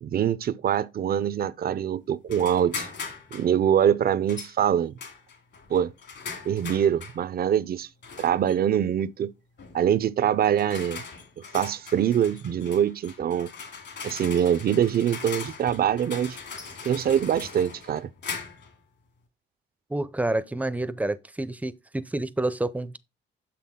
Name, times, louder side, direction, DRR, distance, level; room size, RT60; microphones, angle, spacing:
voice 1, 0.0-2.9 3.3-4.9 5.7-5.9 6.4-7.9 8.2-9.3 9.7-11.0 11.5-13.5 14.0-16.4 16.8-18.1, right 9 dB, 50° right, 0.5 m, -24 dB
sound 1, 2.3-3.5 4.3-4.6 5.0-7.2 8.0-8.6 9.6-9.8 10.4-18.7, left 5 dB, 60° left, 2.4 m, -40 dB
voice 2, 19.9-23.0, right 2 dB, 5° right, 0.6 m, -28 dB
6.8 x 6.0 x 3.6 m
cardioid pair, 90°, 20 cm